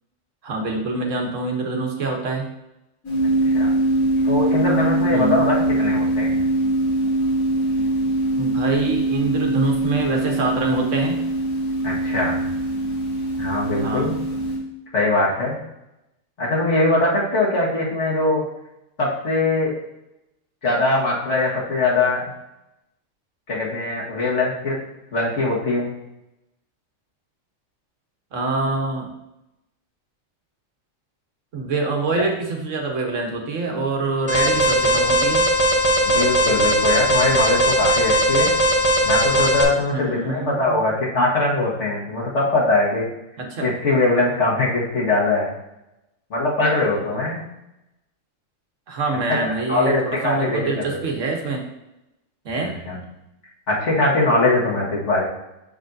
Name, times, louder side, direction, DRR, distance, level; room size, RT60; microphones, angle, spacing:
voice 1, 0.4-2.5 5.1-5.4 8.4-11.2 13.8-14.2 28.3-29.1 31.5-35.5 39.9-40.8 43.4-43.7 48.9-51.6 52.4-52.7, right 3 dB, 70° right, 2 dB, 1.3 m, -25 dB
sound 1, 3.0-14.6, right 1 dB, 85° left, 2.5 m, -22 dB
voice 2, 4.2-6.4 11.8-12.5 13.4-14.1 14.9-15.6 16.4-18.4 19.0-19.8 20.6-22.3 23.5-24.8 25.1-25.9 32.2-32.3 36.1-38.5 39.0-43.1 43.6-45.5 46.3-47.4 49.4-51.0 52.9-53.0 53.7-55.2, left 2 dB, 60° left, -4 dB, 1.9 m, -21 dB
Alarm, 34.3-39.6, equal, 30° left, 0.8 m, -18 dB
6.7 x 6.3 x 2.6 m, 0.91 s
omnidirectional pair, 1.4 m